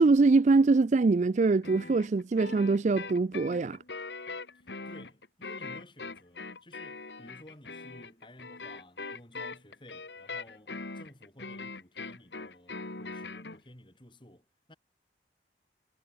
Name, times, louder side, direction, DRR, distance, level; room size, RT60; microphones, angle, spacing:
voice 1, 0.0-3.8, right 3 dB, 40° right, 0.4 m, -23 dB
sound 1, 1.6-13.6, left 3 dB, 75° left, 2.3 m, -41 dB
voice 2, 4.5-14.7, left 1 dB, 25° left, 6.7 m, -54 dB
head